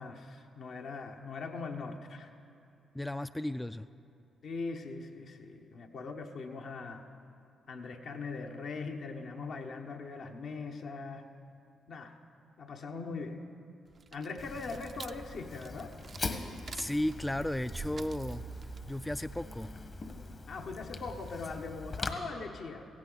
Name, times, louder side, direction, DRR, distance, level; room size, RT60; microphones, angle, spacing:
voice 1, 0.0-2.3 4.4-7.0 7.7-11.2 11.9-12.2 12.6-13.4 14.1-15.9 20.5-22.9, left 4 dB, 70° left, 3 dB, 1.1 m, -41 dB
voice 2, 2.9-3.9 16.7-18.4 18.9-19.8, left 1 dB, 10° left, 12 dB, 0.3 m, -34 dB
sound 1, 13.9-20.4, right 5 dB, 50° right, 0.5 m, -47 dB
Fire, 14.4-22.1, left 3 dB, 45° left, 1.2 m, -42 dB
16.5 x 15.5 x 3.9 m, 2.6 s
supercardioid pair, 50°, 0 cm